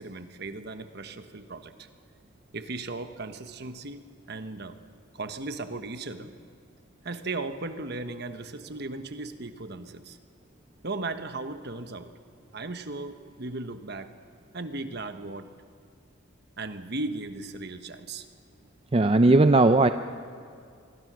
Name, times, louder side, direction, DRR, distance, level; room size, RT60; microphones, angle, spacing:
voice 1, 0.0-1.9 2.5-4.8 5.1-6.4 7.0-10.2 10.8-12.1 12.5-14.1 14.5-15.5 16.6-18.3, right 2 dB, 50° right, 9 dB, 1.2 m, -36 dB
voice 2, 18.9-19.9, right 2 dB, 25° right, 9 dB, 0.5 m, -18 dB
26.5 x 22.5 x 6.3 m, 2.4 s
head